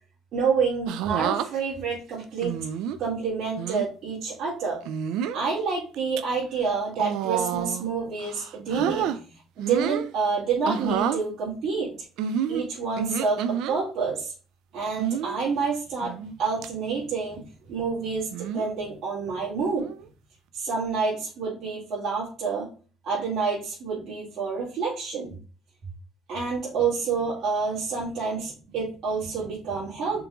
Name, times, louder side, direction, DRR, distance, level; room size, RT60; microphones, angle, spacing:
voice 1, 0.3-2.6 3.0-4.8 5.3-9.2 9.6-11.9 12.5-14.3 14.7-19.9 20.5-22.7 23.0-25.3 26.3-30.3, right 5 dB, 60° right, -8 dB, 2.1 m, -28 dB
sound 1, 0.9-1.5 2.4-3.0 3.6-3.8 4.8-5.4 5.9-6.2 6.9-7.9 8.2-9.2 9.6-10.1 10.6-11.2 12.2-13.7 15.0-15.4 16.0-16.3 16.6-16.7 18.3-18.7 19.8-20.1, right 9 dB, 75° right, 0.4 m, -29 dB
5.7 x 3.8 x 2.4 m, 0.36 s
supercardioid pair, 75°, 0 cm